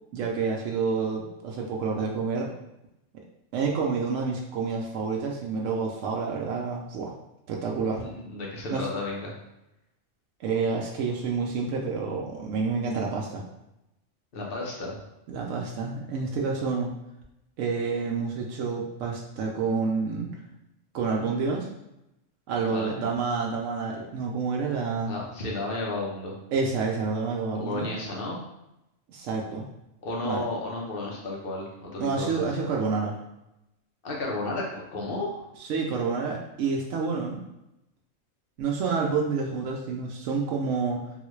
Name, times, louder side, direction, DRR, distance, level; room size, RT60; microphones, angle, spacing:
voice 1, 0.1-2.5 3.5-7.1 7.5-8.1 8.7-8.9 10.4-13.4 15.3-16.9 17.6-20.3 20.9-21.7 22.5-25.1 26.5-27.9 29.1-29.7 30.2-30.4 32.0-33.2 35.6-37.4 38.6-41.0, right 4 dB, 75° right, -1 dB, 0.9 m, -28 dB
voice 2, 7.8-9.3 14.3-15.0 22.6-23.1 25.0-26.3 27.5-28.4 30.0-32.5 34.0-35.4, left 2 dB, 50° left, -2 dB, 0.9 m, -33 dB
3.7 x 2.3 x 3.1 m, 0.89 s
omnidirectional pair, 1.3 m